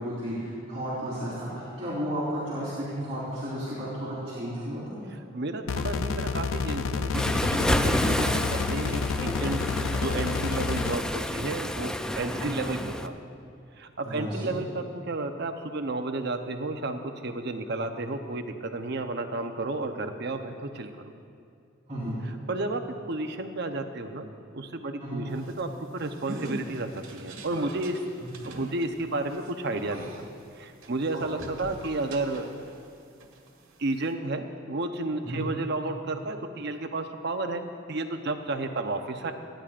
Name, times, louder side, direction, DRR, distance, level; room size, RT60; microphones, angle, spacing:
voice 1, 0.0-5.0 12.3-12.5 14.0-14.6 21.9-22.2 25.0-25.3 28.2-28.3 31.4-31.5 35.2-35.5, equal, 30° right, -11 dB, 3.7 m, -33 dB
voice 2, 5.3-9.6 9.9-13.1 13.8-20.9 22.2-22.8 23.1-28.0 28.4-30.3 30.5-32.5 33.8-39.3, right 2 dB, 60° right, 6 dB, 0.8 m, -32 dB
sound 1, 5.7-11.0, left 5 dB, 85° left, 0.4 m, -29 dB
Waves surf, 7.1-13.1, equal, 5° left, 0.3 m, -29 dB
sound 2, 25.3-32.9 33.2-34.1, right 1 dB, 90° right, 1.6 m, -43 dB
28.0 x 10.0 x 2.5 m, 2.4 s
head